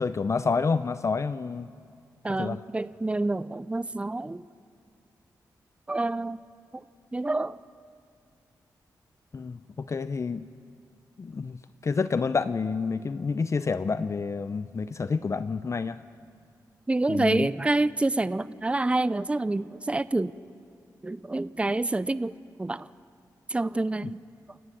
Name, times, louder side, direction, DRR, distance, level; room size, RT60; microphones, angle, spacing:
voice 1, 0.0-1.7 2.3-2.6 9.3-10.4 11.2-16.0 17.1-17.5 24.0-24.1, left 4 dB, 45° left, 13 dB, 0.6 m, -29 dB
voice 2, 2.2-4.4 5.9-6.4 6.7-6.8 7.1-7.6 16.9-20.3 21.0-22.3 22.6-22.9 23.5-24.2, right 2 dB, 15° right, 17 dB, 0.5 m, -27 dB
29.0 x 17.5 x 7.5 m, 2.3 s
cardioid pair, 75°, 7 cm